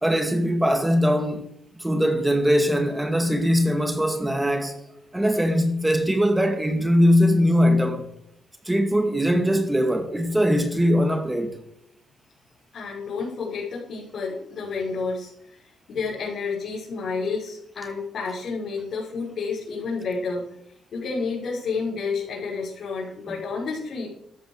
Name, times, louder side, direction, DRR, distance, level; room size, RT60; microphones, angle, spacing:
voice 1, 0.0-1.5 1.8-4.8 5.1-8.1 8.7-11.6, equal, 10° right, 2.1 m, -21 dB
voice 2, 12.7-15.6 15.9-20.4 20.9-24.1, left 4 dB, 60° left, 6.3 m, -30 dB
13.0 x 11.5 x 6.7 m
cardioid pair, 90°, 0 cm